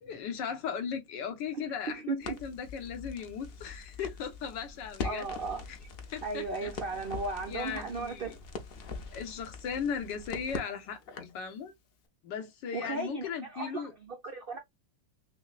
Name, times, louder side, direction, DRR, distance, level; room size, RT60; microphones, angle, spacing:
voice 1, 0.0-5.3 5.7-5.8 6.1-6.7 7.5-8.4 9.1-11.7 12.2-13.9, left 7 dB, 90° left, 1.6 m, -37 dB
Crackle, 2.2-11.4, left 5 dB, 75° left, 0.5 m, -43 dB
voice 2, 5.0-5.6 6.2-8.4 12.7-13.2 13.5-14.6, right 3 dB, 70° right, 0.5 m, -35 dB
6.2 x 2.1 x 2.3 m
omnidirectional pair, 1.9 m